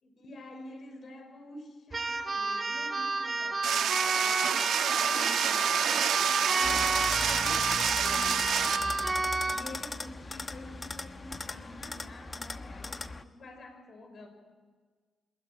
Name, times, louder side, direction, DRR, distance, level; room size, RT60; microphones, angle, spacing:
voice 1, 0.0-14.3, left 1 dB, 50° left, 5 dB, 5.9 m, -48 dB
Keyboard (musical), 1.9-9.7, right 3 dB, 25° right, 2.7 m, -31 dB
sound 1, 3.6-8.8, right 9 dB, 85° right, 1.8 m, -28 dB
sound 2, 6.6-13.2, left 3 dB, 25° left, 1.1 m, -38 dB
26.0 x 21.0 x 9.9 m, 1.5 s
cardioid pair, 110°, 0 cm